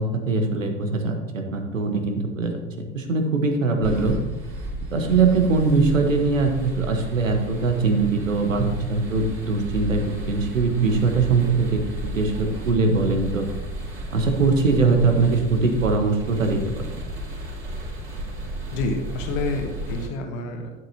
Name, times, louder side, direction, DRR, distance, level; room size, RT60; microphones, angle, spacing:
voice 1, 0.0-2.5 2.9-4.2 4.9-13.5 14.1-16.9, right 4 dB, 80° right, 5 dB, 1.3 m, -22 dB
sound 1, 3.8-20.1, right 1 dB, 30° right, 3.5 m, -33 dB
voice 2, 18.7-20.7, left 3 dB, 55° left, 4 dB, 1.6 m, -28 dB
12.5 x 7.7 x 2.8 m, 1.1 s
figure-of-eight pair, 75°, 38 cm